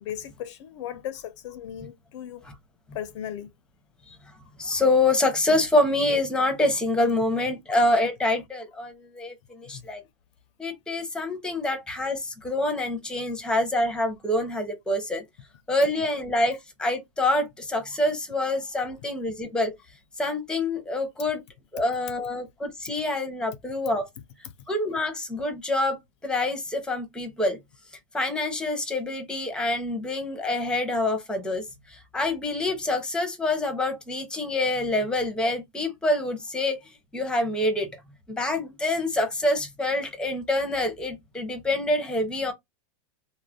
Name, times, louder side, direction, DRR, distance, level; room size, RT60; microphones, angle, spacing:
voice 1, 0.0-2.4 2.9-3.5 9.7-9.9, left 10 dB, 65° left, 0.5 m, -37 dB
voice 2, 4.6-10.0 10.6-15.2 15.7-19.7 20.2-21.4 21.7-24.1 24.7-27.6 28.1-36.8 37.1-37.9 38.3-42.5, left 2 dB, 5° left, 0.7 m, -26 dB
2.4 x 2.1 x 3.4 m
supercardioid pair, 145°, 16 cm